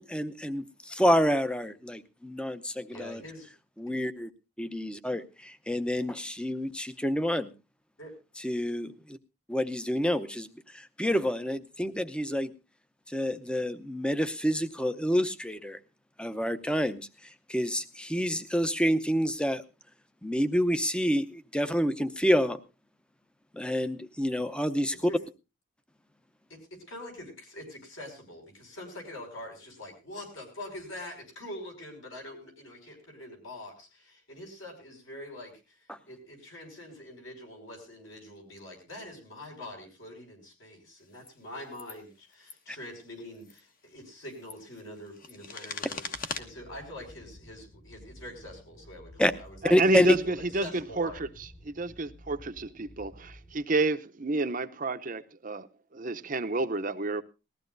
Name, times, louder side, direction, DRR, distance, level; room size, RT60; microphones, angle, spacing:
voice 1, 0.0-3.2 3.8-4.3 4.6-7.5 8.4-9.2 9.5-10.5 10.7-12.5 13.1-15.8 16.2-17.1 17.5-19.6 20.2-22.6 23.5-24.9 35.9-36.0 49.2-49.3 49.7-50.1, equal, 5° left, 0.6 m, -28 dB
voice 2, 2.9-3.5 8.0-8.1 25.1-25.2 26.5-35.8 36.1-46.0 46.4-51.2, left 1 dB, 70° left, 5.6 m, -44 dB
sound 1, 41.1-41.3 41.7-42.0 42.3-42.6 43.3-43.6 44.2-46.4, left 4 dB, 40° left, 1.2 m, -40 dB
sound 2, 46.1-53.5, left 1 dB, 25° left, 1.2 m, -52 dB
voice 3, 49.6-55.7 55.9-57.2, right 2 dB, 40° right, 0.6 m, -30 dB
19.5 x 14.0 x 2.6 m
head